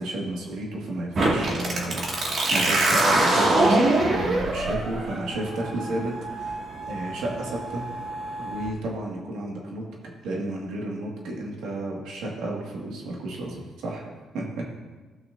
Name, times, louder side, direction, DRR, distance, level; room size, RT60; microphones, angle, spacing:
voice 1, 0.0-6.6 6.9-7.8 8.4-9.9 10.2-14.0 14.3-14.8, right 1 dB, 85° right, -2 dB, 2.0 m, -32 dB
weird starter, 1.1-8.7, right 2 dB, 55° right, 2.1 m, -24 dB
17.0 x 6.0 x 2.7 m, 1.3 s
cardioid pair, 90°, 0 cm